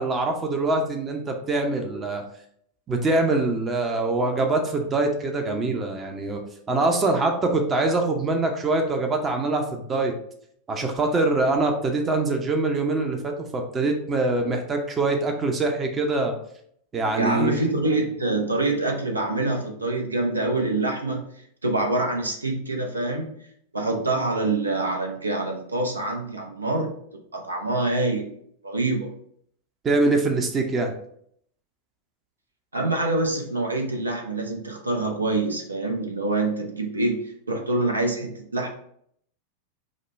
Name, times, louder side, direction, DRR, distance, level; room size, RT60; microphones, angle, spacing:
voice 1, 0.0-2.2 2.9-6.4 6.7-10.1 10.7-16.4 16.9-17.6 29.8-30.9, right 2 dB, 20° right, 4 dB, 0.6 m, -24 dB
voice 2, 17.2-21.2 21.6-23.3 23.7-26.9 27.3-28.3 28.6-29.1 32.7-38.7, right 2 dB, 80° right, 3 dB, 0.6 m, -25 dB
5.1 x 2.2 x 3.9 m, 0.68 s
figure-of-eight pair, 90°, 0 cm